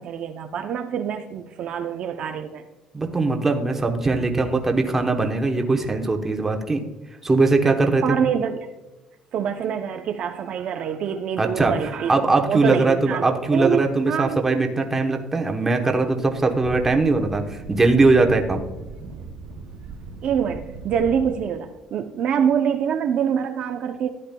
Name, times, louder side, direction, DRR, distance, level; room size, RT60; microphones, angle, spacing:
voice 1, 0.0-2.6 8.0-8.6 9.3-12.2 12.5-14.5 20.2-24.1, right 8 dB, 50° right, 6 dB, 0.5 m, -25 dB
voice 2, 2.9-6.8 7.2-8.0 11.4-11.7 12.1-18.6, right 3 dB, 15° right, 4 dB, 0.9 m, -20 dB
sound 1, 16.2-21.4, right 4 dB, 80° right, 1.9 m, -38 dB
13.5 x 10.0 x 2.2 m, 1.1 s
cardioid pair, 155°, 2 cm